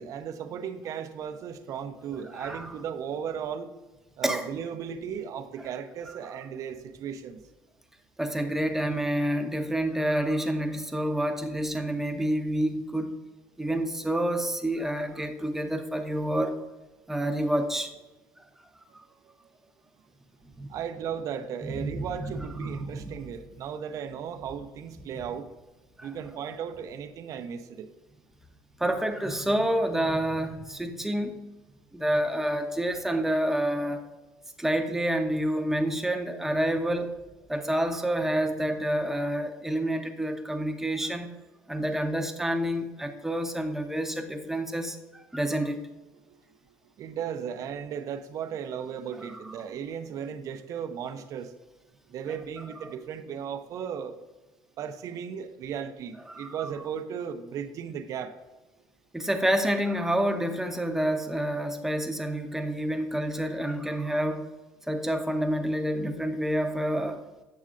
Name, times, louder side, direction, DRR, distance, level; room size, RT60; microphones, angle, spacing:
voice 1, 0.0-3.7 4.2-7.4 20.7-25.5 26.0-27.9 46.3-46.4 47.0-51.5 52.1-54.2 54.8-58.3, right 8 dB, 55° right, 9 dB, 0.5 m, -36 dB
voice 2, 2.3-2.7 4.2-4.5 5.6-5.7 8.2-13.2 13.6-16.6 17.1-17.9 18.9-19.0 20.6-20.7 21.6-23.2 26.0-26.1 28.8-31.4 31.9-34.1 34.6-37.1 37.5-41.3 41.7-45.9 52.8-52.9 56.3-56.6 59.1-64.5 64.9-67.2, right 1 dB, 5° right, 5 dB, 0.7 m, -28 dB
8.4 x 6.3 x 2.5 m, 1.1 s
supercardioid pair, 95°, 7 cm